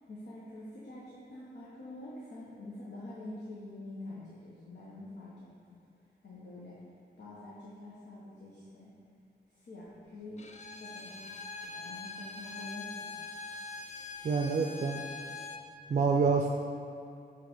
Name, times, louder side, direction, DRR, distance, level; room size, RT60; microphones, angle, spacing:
voice 1, 0.1-5.3 5.7-5.8 6.2-6.8 7.2-8.9 9.5-11.2 11.6-13.2, left 1 dB, 80° left, -8 dB, 1.1 m, -46 dB
Bowed string instrument, 10.4-15.7, left 4 dB, 40° left, 0.5 m, -43 dB
voice 2, 14.2-15.0 15.9-16.5, right 4 dB, 45° right, 2 dB, 0.4 m, -27 dB
7.6 x 3.3 x 4.9 m, 2.5 s
wide cardioid pair, 95°, 18 cm